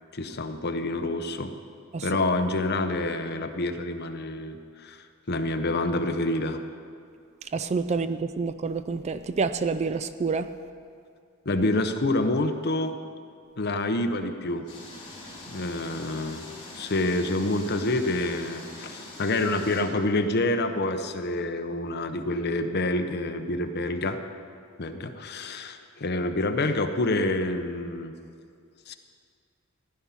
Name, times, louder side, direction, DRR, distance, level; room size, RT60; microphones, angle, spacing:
voice 1, 0.1-1.5 2.0-6.6 11.5-13.0 13.6-14.6 15.5-16.4 16.7-24.2 24.8-28.1 28.9-29.0, left 2 dB, 50° left, 7 dB, 0.9 m, -27 dB
voice 2, 7.5-10.5, right 4 dB, 30° right, 11 dB, 0.4 m, -28 dB
sound 1, 14.7-19.8, left 2 dB, 25° left, 4.0 m, -43 dB
15.0 x 10.5 x 5.8 m, 2.3 s
head